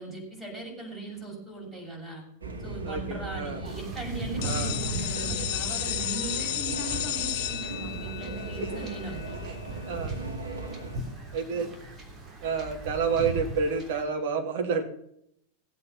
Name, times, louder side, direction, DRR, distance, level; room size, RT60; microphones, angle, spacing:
voice 1, 0.0-2.3 2.6-9.4 11.5-11.7, right 2 dB, 10° right, -1 dB, 7.0 m, -39 dB
sound 1, 2.4-11.0, right 2 dB, 75° right, 2.4 m, -38 dB
voice 2, 2.9-3.6 4.4-4.7 8.6-8.7 9.5-9.6 9.8-10.1 11.3-11.7 12.4-14.8, right 5 dB, 55° right, 4 dB, 2.8 m, -29 dB
Wind / Ocean / Boat Water vehicle, 3.6-14.0, right 3 dB, 30° right, 3.4 m, -39 dB
sound 2, 4.4-10.1, left 12 dB, 50° left, 1.1 m, -33 dB
16.5 x 8.6 x 5.8 m, 0.71 s
figure-of-eight pair, 90°, 0 cm